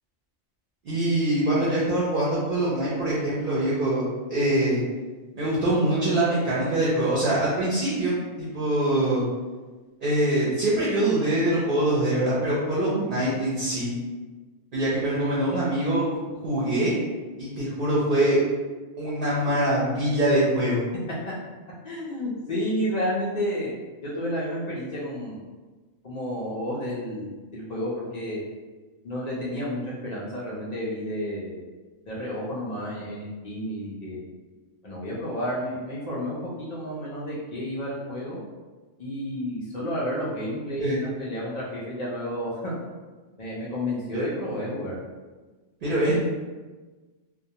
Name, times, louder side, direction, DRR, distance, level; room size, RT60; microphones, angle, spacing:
voice 1, 0.8-4.0 4.3-4.8 5.4-9.2 10.0-13.9 14.7-16.0 16.4-16.9 17.4-18.4 19.0-20.8 40.8-41.0 44.1-44.3 45.8-46.1, right 1 dB, 55° right, -7 dB, 0.6 m, -24 dB
voice 2, 21.8-23.8 24.0-25.4 26.0-28.4 29.0-31.7 32.1-34.2 34.8-38.4 39.0-42.8 43.4-45.0, equal, 80° left, -7 dB, 0.3 m, -31 dB
2.3 x 2.2 x 2.7 m, 1.3 s
omnidirectional pair, 1.4 m